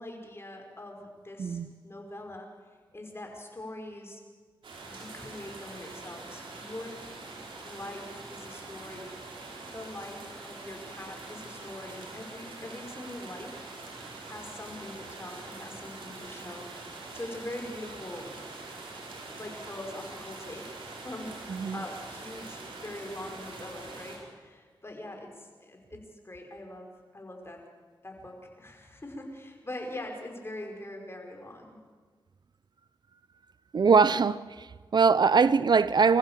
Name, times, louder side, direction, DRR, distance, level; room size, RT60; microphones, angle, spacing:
voice 1, 0.0-2.5 2.9-4.2 4.9-7.0 7.6-9.4 9.7-13.6 14.2-18.3 19.3-21.4 21.7-27.6 28.0-31.8, left 1 dB, 30° left, 5.3 m, -43 dB
voice 2, 1.4-1.7 21.5-21.8 33.7-36.2, right 5 dB, 55° right, 0.6 m, -22 dB
sound 1, 4.6-24.2, right 3 dB, 80° right, 4.6 m, -44 dB
26.0 x 15.0 x 7.5 m
cardioid pair, 50°, 9 cm